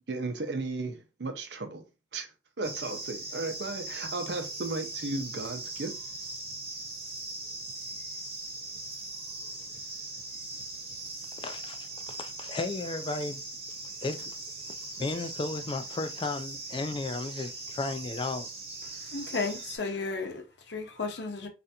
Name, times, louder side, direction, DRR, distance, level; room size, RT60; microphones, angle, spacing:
voice 1, 0.1-1.8 2.1-2.3 2.6-5.9, right 3 dB, 75° right, 0.7 m, -35 dB
sound 1, 2.6-19.8, right 2 dB, 35° right, 0.9 m, -40 dB
voice 2, 11.4-13.4 14.0-14.3 15.0-18.5, left 3 dB, 30° left, 0.3 m, -34 dB
voice 3, 19.0-21.5, left 4 dB, 75° left, 0.7 m, -34 dB
3.3 x 2.5 x 2.7 m
head